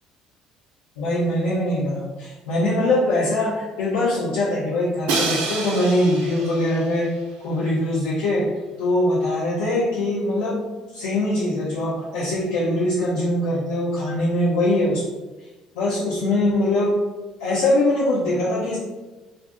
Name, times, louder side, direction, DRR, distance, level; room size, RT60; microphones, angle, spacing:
voice 1, 1.0-7.1 7.4-8.5 8.8-10.6 10.9-15.0 15.8-17.0 17.4-18.8, left 1 dB, 80° left, -8 dB, 0.7 m, -22 dB
Crash cymbal, 5.1-7.1, right 3 dB, 70° right, 0.6 m, -27 dB
2.6 x 2.4 x 3.6 m, 1.2 s
hypercardioid pair, 55°, 2 cm